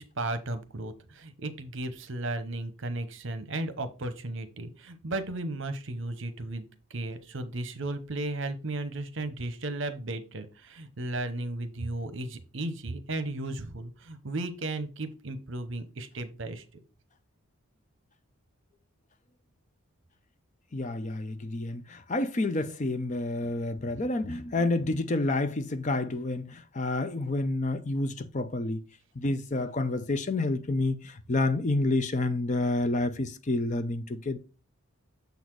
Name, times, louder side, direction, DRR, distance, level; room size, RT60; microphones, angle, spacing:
voice 1, 0.0-16.8, right 2 dB, 60° right, 0.9 m, -35 dB
voice 2, 20.7-28.8 29.2-34.4, left 2 dB, 35° left, 0.5 m, -29 dB
6.9 x 4.1 x 4.6 m
head